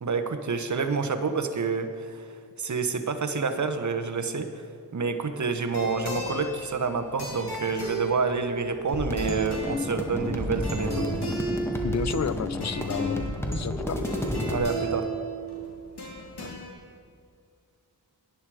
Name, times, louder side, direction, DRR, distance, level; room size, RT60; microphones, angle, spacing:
voice 1, 0.0-2.3 2.6-4.7 4.9-11.1 14.5-15.1, right 4 dB, 45° right, 9 dB, 1.0 m, -28 dB
sound 1, 5.6-16.7, right 2 dB, 70° left, 2.9 m, -35 dB
sound 2, 8.9-14.6, left 1 dB, 5° left, 1.7 m, -31 dB
voice 2, 11.8-14.1 16.4-16.6, left 7 dB, 45° left, 15 dB, 0.5 m, -32 dB
11.0 x 10.0 x 4.9 m, 2.3 s
cardioid pair, 55°, 40 cm